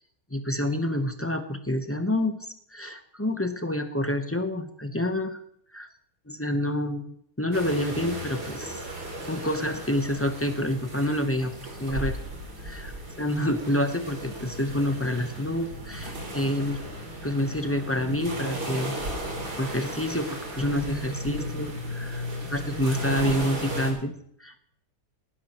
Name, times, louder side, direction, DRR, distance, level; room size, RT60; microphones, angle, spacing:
voice 1, 0.3-5.4 5.7-5.9 6.3-8.9 9.3-11.5 11.8-12.2 12.6-16.8 17.2-19.0 19.6-24.1 24.4-24.6, left 1 dB, 10° left, 7 dB, 0.8 m, -28 dB
sound 1, 7.5-23.9, equal, 75° right, 3.6 m, -35 dB
19.0 x 10.5 x 3.1 m, 0.67 s
omnidirectional pair, 1.7 m